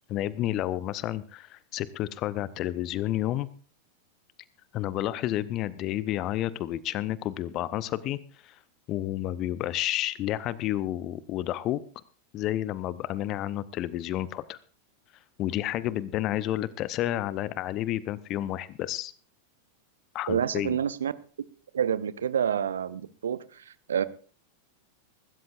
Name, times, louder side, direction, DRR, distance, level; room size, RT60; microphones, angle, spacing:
voice 1, 0.1-3.5 4.7-8.6 8.9-11.8 12.3-14.6 15.4-19.1 20.1-20.8, left 13 dB, 35° left, 0.6 m, -30 dB
voice 2, 20.3-21.1 21.7-24.0, right 8 dB, 65° right, 0.6 m, -28 dB
23.5 x 13.0 x 2.5 m
figure-of-eight pair, 90°, 0 cm